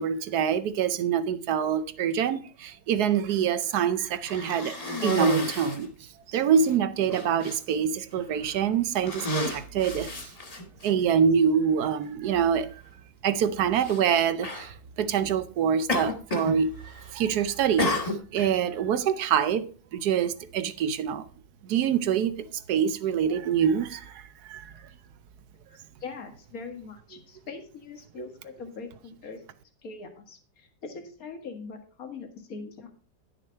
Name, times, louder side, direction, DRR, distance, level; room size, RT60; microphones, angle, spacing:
voice 1, 0.0-5.9 6.3-10.3 10.8-12.7 13.2-19.6 19.9-21.2 21.6-24.7, right 7 dB, 70° right, 1.2 m, -25 dB
Cough, 4.2-5.9 6.6-6.7 7.1-7.6 8.3-8.6 9.0-10.9 11.9-12.0 13.8-14.0 14.4-14.7 15.9-16.6 16.8-17.3 17.8-18.5, left 1 dB, 25° left, 1.4 m, -31 dB
voice 2, 25.7-29.4 29.8-32.9, left 4 dB, 55° left, 2.1 m, -42 dB
10.5 x 6.7 x 4.5 m
omnidirectional pair, 1.8 m